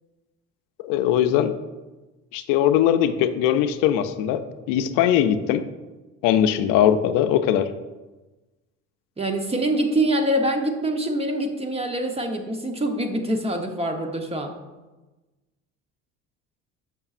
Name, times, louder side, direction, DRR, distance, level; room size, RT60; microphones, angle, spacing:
voice 1, 0.8-1.5 2.3-5.6 6.2-7.7, left 10 dB, 75° left, 9 dB, 0.5 m, -20 dB
voice 2, 9.2-14.6, right 1 dB, 20° right, 4 dB, 0.8 m, -25 dB
6.8 x 6.0 x 2.4 m, 1.1 s
supercardioid pair, 90°, 33 cm